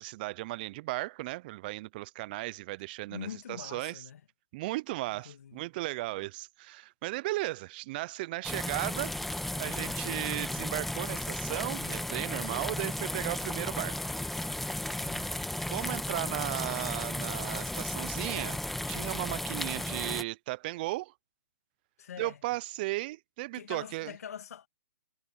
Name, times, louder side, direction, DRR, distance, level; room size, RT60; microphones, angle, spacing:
voice 1, 0.0-4.0 4.5-14.0 15.2-18.6 18.9-21.1 22.2-24.1, right 19 dB, 35° right, 0.5 m, -36 dB
voice 2, 3.1-4.2 5.1-5.6 15.0-15.3 19.6-20.0 22.0-22.4 23.5-24.7, left 8 dB, 65° left, 2.6 m, -44 dB
sound 1, 8.4-20.2, left 1 dB, ahead, 1.4 m, -34 dB
hypercardioid pair, 145°, 9 cm